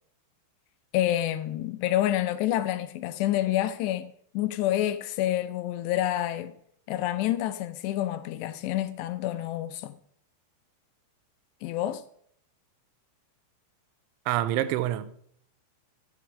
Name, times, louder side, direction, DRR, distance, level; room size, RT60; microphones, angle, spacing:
voice 1, 0.9-6.6 6.9-9.9 11.6-12.0, left 13 dB, 80° left, 2.5 m, -28 dB
voice 2, 14.3-15.2, right 13 dB, 85° right, 3.1 m, -27 dB
11.5 x 9.8 x 4.8 m
omnidirectional pair, 5.5 m